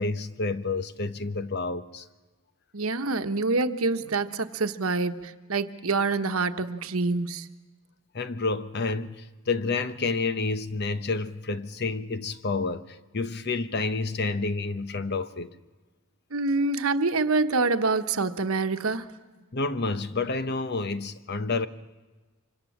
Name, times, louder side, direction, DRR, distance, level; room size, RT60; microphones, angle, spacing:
voice 1, 0.0-2.1 8.1-15.5 19.5-21.7, left 3 dB, 50° left, 1.0 m, -29 dB
voice 2, 2.7-7.5 16.3-19.1, right 3 dB, 90° right, 1.2 m, -26 dB
25.5 x 25.0 x 7.3 m
head